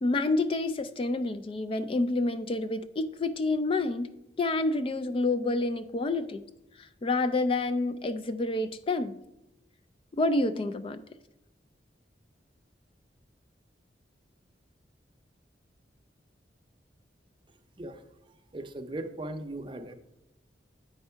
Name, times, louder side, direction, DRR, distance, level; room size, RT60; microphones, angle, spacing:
voice 1, 0.0-4.1 4.4-6.4 6.8-9.2 10.1-11.0, left 2 dB, 30° left, 12 dB, 0.3 m, -28 dB
voice 2, 18.5-19.9, right 1 dB, 30° right, 6 dB, 0.6 m, -38 dB
8.6 x 4.6 x 5.5 m, 0.90 s
head